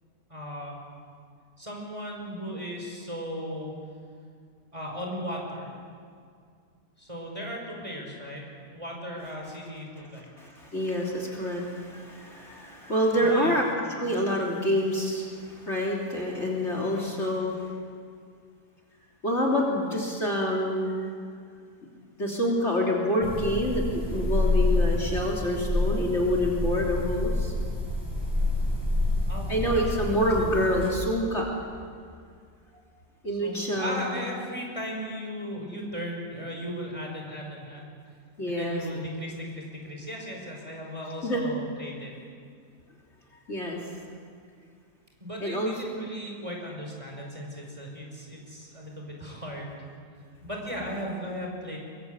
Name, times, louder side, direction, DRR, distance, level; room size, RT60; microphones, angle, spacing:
voice 1, 0.3-0.8 1.6-3.7 4.7-5.7 7.0-10.3 13.2-13.6 14.0-14.3 16.8-17.1 29.3-30.3 33.3-37.9 38.5-42.1 45.2-49.8 50.4-51.8, equal, 20° right, -1 dB, 5.3 m, -37 dB
voice 2, 9.2-9.6 10.0-10.1 10.4-17.7 19.2-21.1 22.2-23.8 24.1-27.5 29.5-31.5 33.2-34.1 38.4-39.0 41.2-41.4 43.5-43.8 45.4-46.1, equal, 40° left, -2 dB, 3.5 m, -27 dB
sound 1, 23.2-30.9, left 2 dB, 10° left, 6.1 m, -28 dB
23.5 x 23.5 x 8.3 m, 2.2 s
omnidirectional pair, 1.7 m